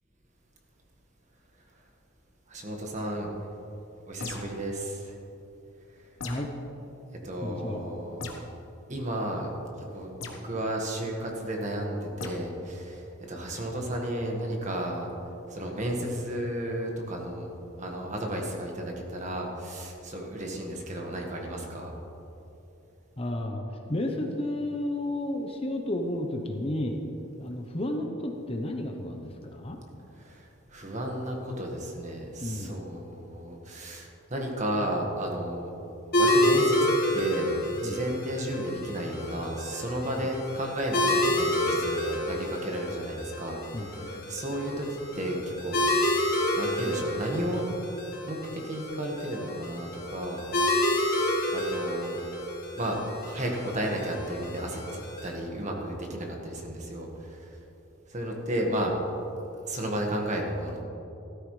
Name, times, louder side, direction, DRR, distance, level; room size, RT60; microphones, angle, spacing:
voice 1, 2.5-3.3 4.1-5.2 5.9-6.1 7.2-8.4 8.9-9.5 9.9-15.1 15.5-17.5 17.8-21.9 30.1-35.7 36.1-46.2 46.5-47.7 48.3-50.4 51.5-52.2 52.8-57.6 58.0-59.0 59.6-60.8, right 1 dB, 35° right, 0 dB, 1.5 m, -33 dB
sound 1, 4.2-4.7 6.2-6.6 8.2-8.5 10.2-10.4 12.2-12.4, left 3 dB, 75° left, 1.2 m, -38 dB
voice 2, 7.4-7.8 23.2-23.6 23.9-27.0 27.4-29.8 32.4-32.8 37.8-38.0 40.2-40.3 41.6-41.8 43.7-44.2, left 1 dB, 30° left, 3 dB, 0.8 m, -32 dB
sound 2, 36.1-55.3, left 1 dB, 50° left, 1.7 m, -29 dB
14.0 x 13.0 x 3.2 m, 2.9 s
head